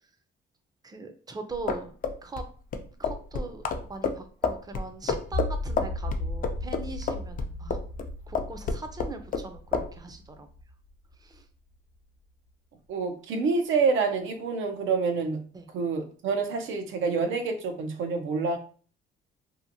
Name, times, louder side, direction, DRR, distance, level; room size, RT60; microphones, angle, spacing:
voice 1, 0.8-1.9 2.2-2.4 3.0-7.8 8.3-10.5 11.2-11.5 15.5-15.7, right 3 dB, 20° right, 7 dB, 0.5 m, -41 dB
sound 1, 1.5-8.1 8.3-9.5 9.7-9.9, left 5 dB, 45° left, 0.4 m, -29 dB
sound 2, 5.3-11.4, left 1 dB, 70° left, 0.9 m, -36 dB
voice 2, 12.9-15.4 15.7-18.6, right 4 dB, 80° right, 6 dB, 0.6 m, -27 dB
2.8 x 2.5 x 2.6 m, 0.42 s
cardioid pair, 90°, 20 cm